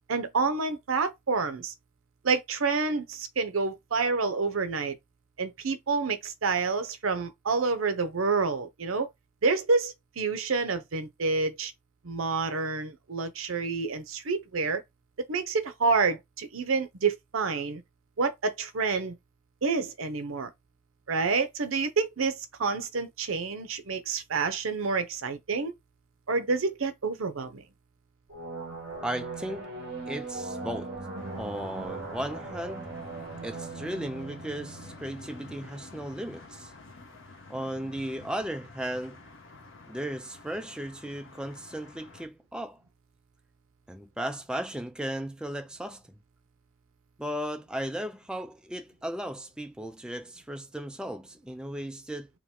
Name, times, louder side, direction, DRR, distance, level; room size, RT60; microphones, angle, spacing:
voice 1, 0.1-1.7 2.2-4.9 5.4-9.1 9.4-11.7 12.0-14.8 15.3-17.8 18.2-19.2 19.6-20.5 21.1-25.7 26.3-27.6, right 4 dB, 85° right, 0.7 m, -28 dB
sound 1, 28.3-35.7, right 3 dB, 55° right, 1.8 m, -39 dB
voice 2, 29.0-29.7 30.1-30.9 31.4-32.9 33.4-36.7 37.5-39.2 39.9-42.8 43.9-46.0 47.2-52.3, right 1 dB, 5° right, 0.3 m, -36 dB
sound 2, 31.2-42.3, left 3 dB, 70° left, 1.1 m, -49 dB
4.7 x 2.2 x 3.7 m
head